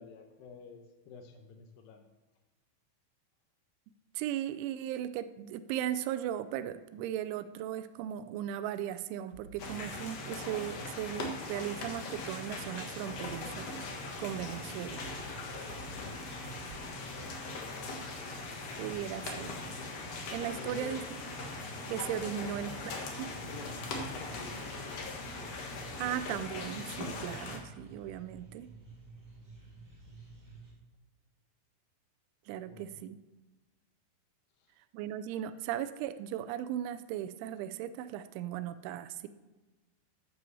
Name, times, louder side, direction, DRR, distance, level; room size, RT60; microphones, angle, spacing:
voice 1, 0.0-2.1 15.8-17.3 20.6-21.0 22.2-23.1 23.4-24.8 32.6-33.1 34.6-34.8, left 6 dB, 80° left, 5 dB, 2.1 m, -50 dB
voice 2, 4.1-13.7 14.2-15.1 18.8-19.6 20.3-21.0 21.9-22.7 23.2-23.3 26.0-28.7 32.5-33.2 34.9-39.3, right 11 dB, 90° right, 12 dB, 3.0 m, -37 dB
sound 1, 9.3-9.8 10.8-10.9 13.1-13.6 14.0-14.3 14.8-15.2 15.5-16.2 16.7-17.1, right 2 dB, 50° right, 2.8 m, -52 dB
sound 2, 9.6-27.6, left 3 dB, 65° left, 1.6 m, -40 dB
sound 3, 13.0-30.7, right 2 dB, 15° right, 2.4 m, -54 dB
9.6 x 8.4 x 6.9 m, 1.2 s
omnidirectional pair, 5.3 m